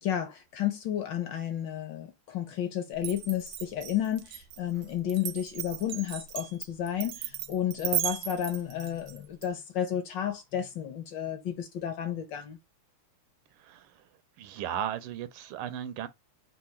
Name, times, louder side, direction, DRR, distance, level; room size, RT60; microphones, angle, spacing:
voice 1, 0.0-12.6, left 10 dB, 65° left, 1.4 m, -32 dB
Glass, 3.0-9.5, right 13 dB, 75° right, 1.1 m, -36 dB
voice 2, 13.6-13.9 14.4-16.1, right 10 dB, 90° right, 1.6 m, -35 dB
4.0 x 2.5 x 4.2 m
omnidirectional pair, 2.4 m